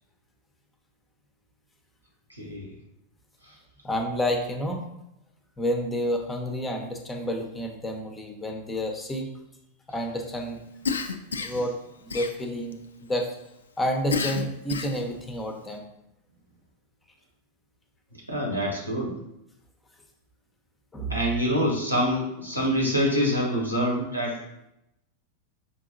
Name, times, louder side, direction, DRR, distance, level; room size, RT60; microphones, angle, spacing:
voice 1, 2.3-2.7 18.3-19.1 21.1-24.4, equal, 85° right, -2 dB, 1.1 m, -25 dB
voice 2, 3.8-4.8 5.6-9.3 9.9-10.6 11.4-11.8 12.0-13.3 13.8-15.8 20.9-21.2, equal, 10° left, 3 dB, 0.6 m, -29 dB
Cough, 10.8-11.7 12.1-12.7 14.1-15.1, left 5 dB, 70° left, 0.3 m, -30 dB
5.7 x 2.7 x 2.6 m, 0.83 s
figure-of-eight pair, 90°, 0 cm